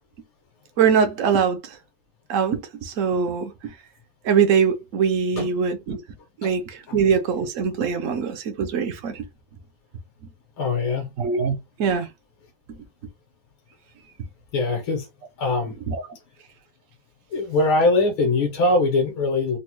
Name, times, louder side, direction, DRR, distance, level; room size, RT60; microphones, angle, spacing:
voice 1, 0.8-1.8 2.3-3.8 4.2-6.0 6.4-9.3 11.2-12.1 12.7-12.8 15.9-16.0, right 6 dB, 80° right, 0.7 m, -22 dB
voice 2, 10.6-11.1 14.5-15.1 15.4-15.8 17.3-19.6, left 2 dB, 80° left, 1.7 m, -22 dB
4.1 x 2.1 x 2.9 m
omnidirectional pair, 2.1 m